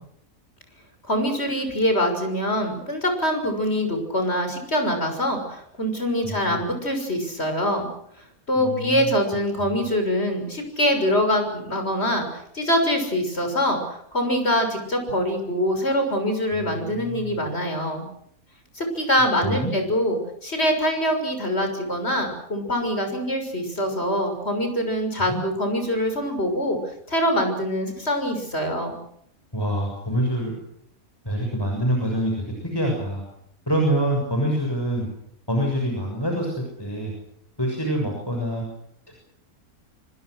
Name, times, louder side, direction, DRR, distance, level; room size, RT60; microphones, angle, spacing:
voice 1, 1.1-7.9 8.5-18.0 18.7-26.8 27.1-28.9, equal, 45° left, 5 dB, 6.8 m, -24 dB
voice 2, 6.2-6.6 8.6-9.1 9.7-9.8 16.5-17.5 19.4-19.7 25.2-25.4 29.5-30.5 31.2-33.2 33.7-35.1 35.5-37.1 37.6-38.6 39.1-39.2, right 1 dB, 15° left, 1 dB, 6.9 m, -26 dB
27.0 x 26.0 x 6.5 m, 0.72 s
omnidirectional pair, 1.5 m